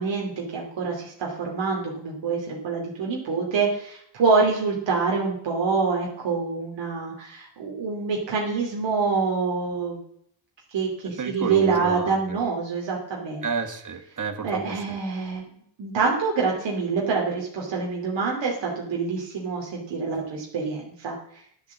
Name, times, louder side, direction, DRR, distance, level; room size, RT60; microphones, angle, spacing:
voice 1, 0.0-10.0 10.7-13.4 14.4-15.5 15.8-21.1, right 4 dB, 85° right, -2 dB, 2.9 m, -26 dB
voice 2, 11.2-12.4 13.4-15.0, right 5 dB, 45° right, 7 dB, 1.8 m, -31 dB
11.5 x 8.0 x 7.3 m, 0.68 s
cardioid pair, 85°, 43 cm